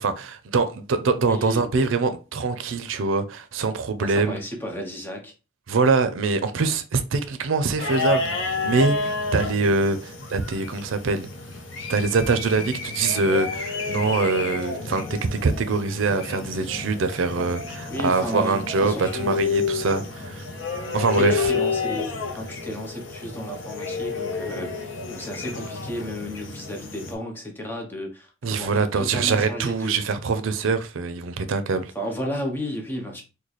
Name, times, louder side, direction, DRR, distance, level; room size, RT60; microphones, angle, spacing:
voice 1, 0.0-4.4 5.7-11.3 11.9-20.4 20.9-21.5 28.4-31.9, right 4 dB, 90° right, 0.5 m, -24 dB
voice 2, 1.3-1.7 4.0-5.3 17.9-19.4 21.1-30.0 31.9-33.2, equal, 10° left, 0.8 m, -33 dB
sound 1, 7.8-27.1, left 4 dB, 70° left, 0.7 m, -30 dB
3.1 x 2.2 x 3.9 m
head